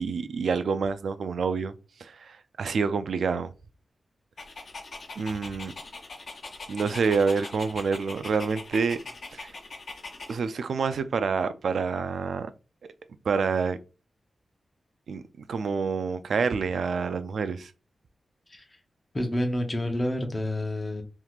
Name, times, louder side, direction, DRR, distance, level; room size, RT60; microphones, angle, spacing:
voice 1, 0.0-1.7 2.0-3.5 5.2-5.7 6.7-9.0 9.3-9.5 10.3-12.5 13.3-13.8 15.1-17.7, right 5 dB, 85° right, 0.3 m, -27 dB
Dog, 4.4-10.3, left 3 dB, 60° left, 0.6 m, -42 dB
voice 2, 19.1-21.0, left 1 dB, 25° left, 0.7 m, -28 dB
3.5 x 2.9 x 2.4 m
wide cardioid pair, 135°, 0 cm